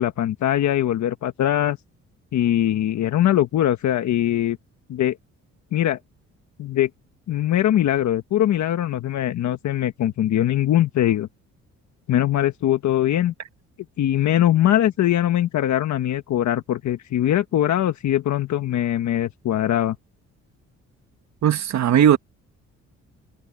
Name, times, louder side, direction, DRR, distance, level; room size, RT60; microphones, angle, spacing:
voice 1, 0.0-1.8 2.3-4.6 4.9-5.2 5.7-6.0 6.6-6.9 7.3-11.3 12.1-13.3 14.0-20.0, left 12 dB, 70° left, 1.3 m, -21 dB
voice 2, 21.4-22.2, right 9 dB, 65° right, 2.0 m, -17 dB
cardioid pair, 90°, 30 cm